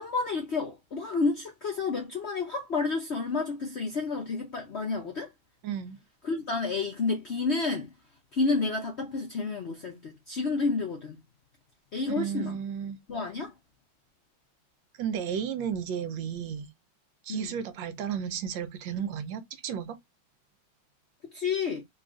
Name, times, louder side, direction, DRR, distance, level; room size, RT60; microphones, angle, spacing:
voice 1, 0.0-5.3 6.2-7.9 8.3-11.2 11.9-12.6 13.1-13.5 17.3-17.6 21.3-21.8, left 4 dB, 55° left, 0.7 m, -30 dB
voice 2, 5.6-6.0 12.2-13.0 15.0-16.7 17.2-20.0, right 8 dB, 80° right, 1.4 m, -33 dB
3.8 x 2.4 x 3.7 m
omnidirectional pair, 2.1 m